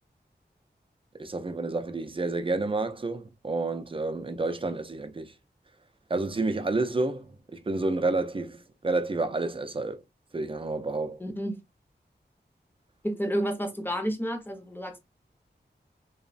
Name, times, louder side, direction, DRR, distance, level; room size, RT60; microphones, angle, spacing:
voice 1, 1.1-5.3 6.1-10.0 10.3-11.2, right 3 dB, 30° right, 0.4 m, -30 dB
voice 2, 11.2-11.6 13.0-15.0, equal, 10° left, 0.6 m, -30 dB
3.0 x 2.0 x 2.4 m
wide cardioid pair, 70°, 18 cm